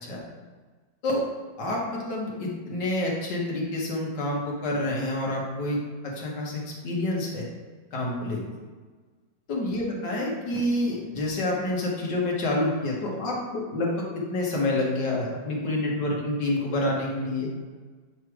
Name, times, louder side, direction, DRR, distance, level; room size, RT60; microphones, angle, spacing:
voice 1, 1.6-5.8 6.0-7.4 7.9-8.4 9.5-17.5, left 1 dB, 65° left, -2 dB, 1.8 m, -28 dB
7.4 x 3.1 x 4.7 m, 1.4 s
omnidirectional pair, 2.1 m